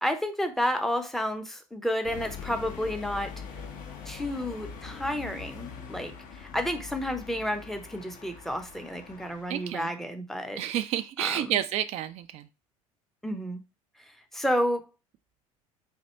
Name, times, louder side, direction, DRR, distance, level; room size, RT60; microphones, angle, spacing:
voice 1, 0.0-3.3 4.1-10.6 11.2-11.6 13.2-13.6 14.3-14.9, equal, ahead, 0.7 m, -31 dB
sound 1, 2.0-9.8, left 6 dB, 50° left, 1.0 m, -43 dB
voice 2, 9.5-9.9 10.6-12.5, right 11 dB, 40° right, 0.4 m, -30 dB
4.3 x 2.7 x 4.2 m
figure-of-eight pair, 65°, 18 cm